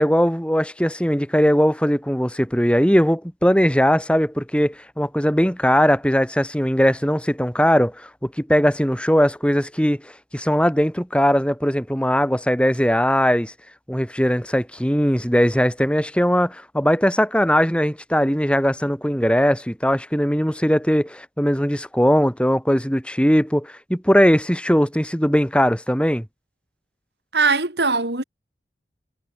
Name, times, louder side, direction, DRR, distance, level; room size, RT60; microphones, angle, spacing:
voice 1, 0.0-13.5 13.9-26.2, equal, 5° left, 6.7 m, -19 dB
voice 2, 27.3-28.2, right 4 dB, 75° right, 3.3 m, -20 dB
head